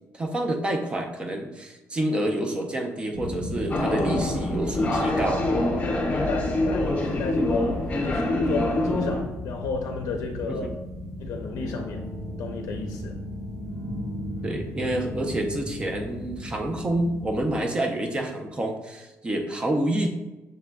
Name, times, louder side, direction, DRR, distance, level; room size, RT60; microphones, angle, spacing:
voice 1, 0.1-5.4 8.0-8.1 10.6-10.7 14.4-20.1, right 1 dB, 15° right, 3 dB, 0.5 m, -28 dB
sound 1, 3.1-17.6, left 1 dB, 75° right, 1.3 m, -35 dB
sound 2, 3.7-9.2, left 1 dB, 25° left, 0.7 m, -25 dB
voice 2, 6.1-10.7 11.2-12.1 12.4-13.2, left 4 dB, 75° left, 3 dB, 0.5 m, -33 dB
6.4 x 3.6 x 2.2 m, 1.0 s
cardioid pair, 175°, 6 cm